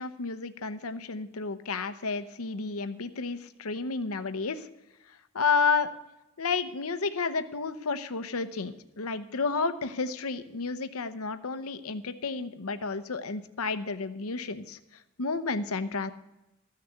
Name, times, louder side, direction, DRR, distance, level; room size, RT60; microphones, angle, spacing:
voice 1, 0.0-4.7 5.3-5.9 6.4-14.8 15.2-16.1, left 4 dB, 80° left, 11 dB, 0.8 m, -31 dB
14.0 x 6.8 x 8.0 m, 0.91 s
head